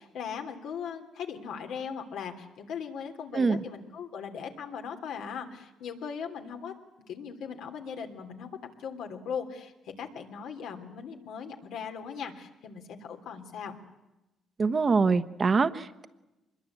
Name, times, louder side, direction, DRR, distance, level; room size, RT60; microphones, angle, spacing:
voice 1, 0.0-6.7 7.1-8.5 8.8-13.8, left 6 dB, 80° left, 4 dB, 3.0 m, -39 dB
voice 2, 14.6-16.1, right 4 dB, 35° right, 12 dB, 1.2 m, -24 dB
24.5 x 21.5 x 8.6 m, 1.0 s
cardioid pair, 90°, 0 cm